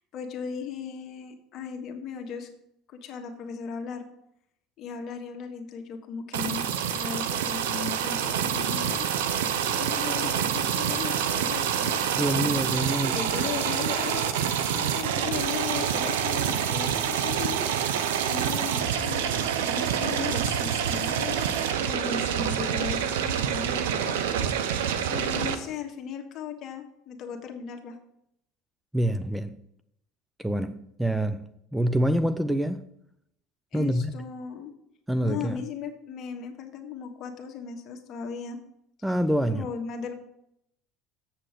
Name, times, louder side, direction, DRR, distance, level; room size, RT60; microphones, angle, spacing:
voice 1, 0.1-2.5 2.9-4.1 4.8-12.1 12.5-12.6 12.9-17.9 18.3-24.4 25.1-28.0 33.7-34.7 35.2-38.6 39.4-40.1, left 7 dB, 50° left, 1.4 m, -37 dB
sound 1, 6.3-25.5, right 8 dB, 90° right, 0.7 m, -27 dB
voice 2, 12.2-13.2 28.9-29.6 30.4-32.8 33.7-34.2 35.1-35.6 39.0-39.7, right 1 dB, 5° right, 0.4 m, -26 dB
7.4 x 6.7 x 5.0 m
supercardioid pair, 95°, 0 cm